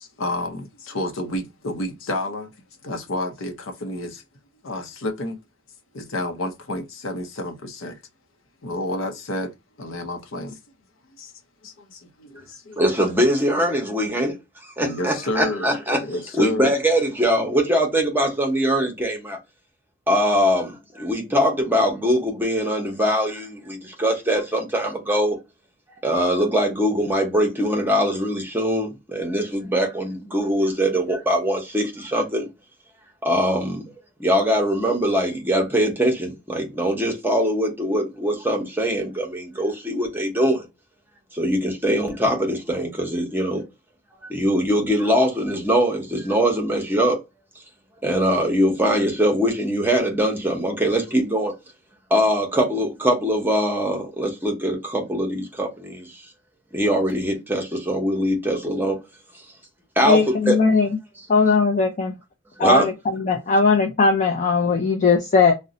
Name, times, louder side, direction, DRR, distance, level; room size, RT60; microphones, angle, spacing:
voice 1, 0.0-2.5 2.8-4.2 4.6-5.4 5.9-8.0 8.6-9.5 9.8-10.6 11.2-11.3 11.6-12.9 14.8-15.8 16.0-16.7, left 1 dB, 75° left, 0.7 m, -30 dB
voice 2, 12.8-14.4 14.6-16.0 16.3-19.4 20.1-25.4 26.0-32.5 33.2-33.9 34.2-40.7 41.3-43.7 44.2-47.2 48.0-51.5 52.1-56.2 56.7-59.0 60.0-60.6 62.6-62.9, equal, 10° right, 0.7 m, -22 dB
voice 3, 60.0-60.9 61.3-62.1 62.6-65.5, left 4 dB, 40° left, 0.4 m, -18 dB
2.6 x 2.1 x 3.7 m
head